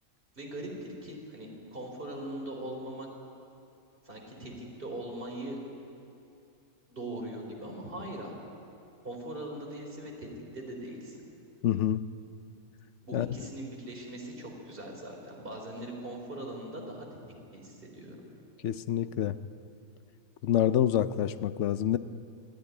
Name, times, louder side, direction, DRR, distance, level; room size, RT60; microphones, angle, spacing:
voice 1, 0.4-3.1 4.0-5.6 6.9-8.3 9.0-10.3 10.5-11.2 13.0-17.1 17.5-18.2, right 1 dB, 40° right, 0 dB, 4.1 m, -40 dB
voice 2, 11.6-12.0 13.1-13.3 18.6-19.4 20.4-22.0, left 11 dB, 65° left, 14 dB, 0.9 m, -27 dB
23.0 x 14.5 x 9.8 m, 2.7 s
omnidirectional pair, 1.5 m